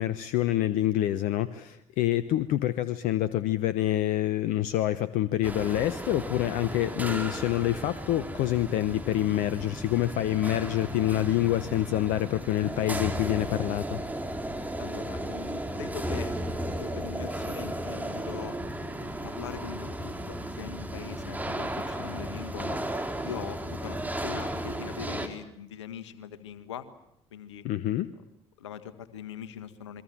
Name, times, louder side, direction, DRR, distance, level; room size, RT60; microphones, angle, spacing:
voice 1, 0.0-14.0 27.6-28.1, left 13 dB, 65° left, 15 dB, 1.0 m, -27 dB
sound 1, 5.4-25.3, right 1 dB, 10° right, 4.3 m, -35 dB
voice 2, 14.8-16.3 16.7-18.6 19.0-22.8 23.2-26.9 27.3-27.6 28.6-30.0, left 9 dB, 85° left, 13 dB, 1.6 m, -42 dB
28.5 x 22.5 x 7.6 m, 0.76 s
hypercardioid pair, 50°, 15 cm